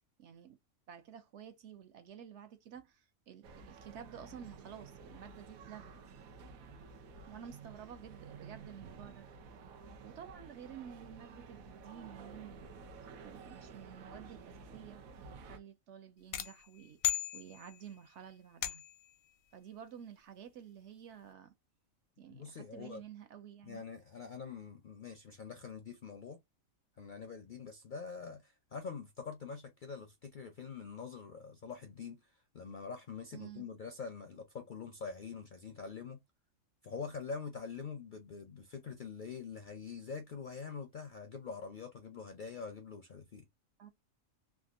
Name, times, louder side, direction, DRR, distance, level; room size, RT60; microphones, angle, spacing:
voice 1, 0.2-0.6 0.9-5.9 7.3-9.3 10.0-12.9 13.2-18.8 19.5-21.5 22.2-23.8 33.3-33.7 43.8-43.9, right 9 dB, 65° right, 0.8 m, -51 dB
sound 1, 3.4-15.6, right 4 dB, 90° right, 1.1 m, -52 dB
sound 2, 16.3-17.9 18.6-19.1, left 13 dB, 85° left, 1.0 m, -37 dB
voice 2, 22.3-23.0 23.6-26.4 27.0-36.2 36.8-43.5, left 5 dB, 60° left, 0.5 m, -45 dB
3.5 x 2.4 x 2.4 m
omnidirectional pair, 1.4 m